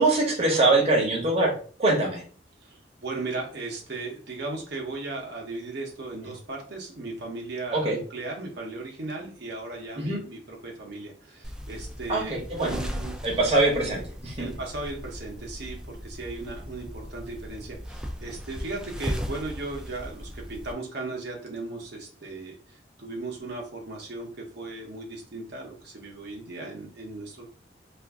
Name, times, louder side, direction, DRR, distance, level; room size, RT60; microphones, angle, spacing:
voice 1, 0.0-1.5 1.8-2.2 7.7-8.0 10.0-10.2 12.1-12.8 13.2-14.5, right 2 dB, 35° right, -2 dB, 0.9 m, -23 dB
voice 2, 2.6-13.2 14.4-24.3 24.5-27.5, right 2 dB, 65° right, -1 dB, 0.8 m, -37 dB
sound 1, 11.4-20.7, equal, 5° right, 0.4 m, -37 dB
2.5 x 2.4 x 3.5 m, 0.42 s
head